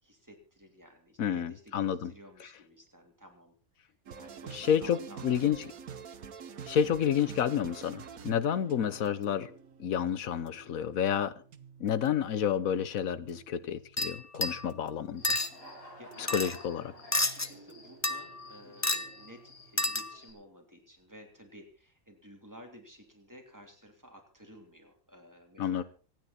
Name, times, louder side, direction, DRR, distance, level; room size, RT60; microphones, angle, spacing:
voice 1, 0.0-3.5 4.1-5.7 8.5-8.7 16.0-16.5 17.2-25.8, equal, 10° right, 2 dB, 3.3 m, -54 dB
voice 2, 1.2-2.1 4.5-5.6 6.6-9.5 9.8-11.3 11.8-15.4 16.2-16.9 25.6-25.8, left 8 dB, 75° left, 15 dB, 1.3 m, -30 dB
sound 1, 4.1-19.8, right 6 dB, 85° right, 1.5 m, -49 dB
sound 2, 14.0-14.7 15.2-15.5 16.3-16.6 17.1-17.5 18.0-18.5 18.8-19.1 19.8-20.2, left 2 dB, 15° left, 0.6 m, -30 dB
Human voice / Cricket, 15.1-20.3, left 1 dB, 40° left, 7.0 m, -52 dB
25.5 x 9.4 x 4.3 m, 0.37 s
omnidirectional pair, 1.5 m